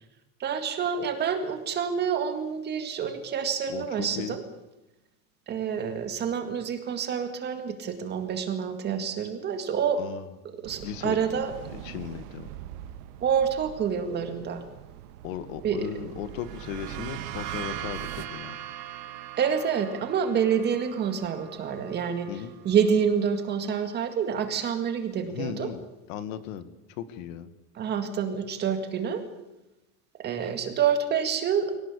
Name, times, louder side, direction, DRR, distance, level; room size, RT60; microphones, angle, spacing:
voice 1, 0.4-4.4 5.5-10.0 10.6-11.5 13.2-14.6 15.6-15.9 19.4-22.3 22.6-25.7 27.7-29.2 30.2-31.7, right 7 dB, 20° right, 7 dB, 2.0 m, -27 dB
voice 2, 3.7-4.4 10.0-10.2 10.8-11.2 11.7-12.5 15.2-18.6 22.3-22.5 25.3-27.5, left 9 dB, 55° left, 13 dB, 1.8 m, -36 dB
sound 1, 10.6-18.3, right 12 dB, 75° right, 1.7 m, -43 dB
sound 2, 16.3-23.8, right 12 dB, 50° right, 2.7 m, -41 dB
24.0 x 18.0 x 8.4 m, 0.97 s
supercardioid pair, 180°, 46 cm